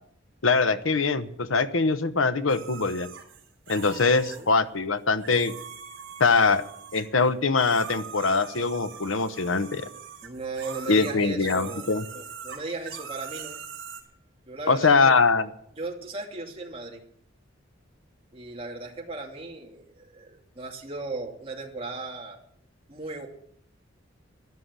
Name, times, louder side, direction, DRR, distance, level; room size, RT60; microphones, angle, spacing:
voice 1, 0.4-3.1 3.7-5.5 6.2-9.9 10.9-12.0 14.7-15.5, left 4 dB, 85° left, 11 dB, 1.0 m, -23 dB
sound 1, 2.5-4.4 5.2-7.2 7.6-14.0, right 6 dB, 65° right, 4.2 m, -42 dB
voice 2, 4.1-4.5 10.2-13.6 14.5-15.2 15.7-17.0 18.3-22.4 22.9-23.3, right 3 dB, 30° right, 0 dB, 2.7 m, -37 dB
13.5 x 11.5 x 7.5 m, 0.68 s
head